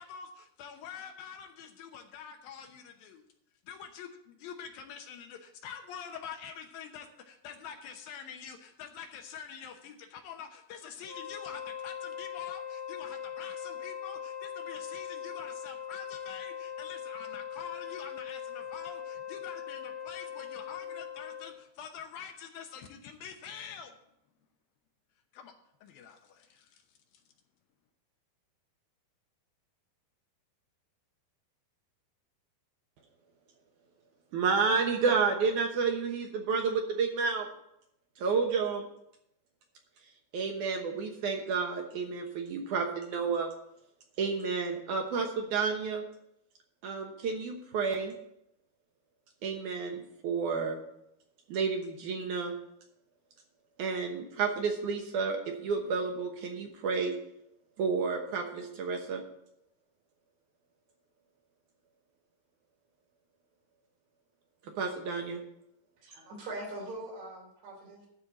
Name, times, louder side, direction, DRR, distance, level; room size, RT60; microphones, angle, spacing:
voice 1, 0.0-3.2 3.7-23.9 25.3-25.5 25.8-26.8, left 7 dB, 75° left, 5 dB, 2.5 m, -46 dB
Wind instrument woodwind instrument, 11.0-21.6, left 8 dB, 10° right, 1.3 m, -41 dB
voice 2, 34.3-37.5 38.2-38.9 40.3-43.5 44.2-46.1 46.8-48.1 49.4-50.8 51.5-52.6 53.8-57.1 57.8-59.2 64.8-65.4, right 5 dB, 65° right, 3 dB, 2.1 m, -30 dB
voice 3, 66.0-68.1, right 2 dB, 85° right, -2 dB, 5.6 m, -42 dB
12.0 x 4.5 x 7.8 m, 0.79 s
omnidirectional pair, 4.5 m